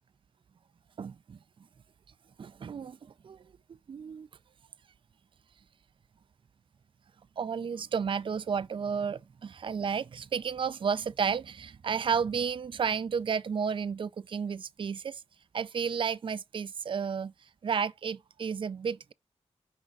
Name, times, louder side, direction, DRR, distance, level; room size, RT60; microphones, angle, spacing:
voice 1, 1.0-1.4 2.4-3.5 3.9-4.3 7.4-15.2 15.5-17.3 17.6-19.1, right 6 dB, 50° right, 0.4 m, -32 dB
6.3 x 5.1 x 4.6 m
wide cardioid pair, 80°, 11 cm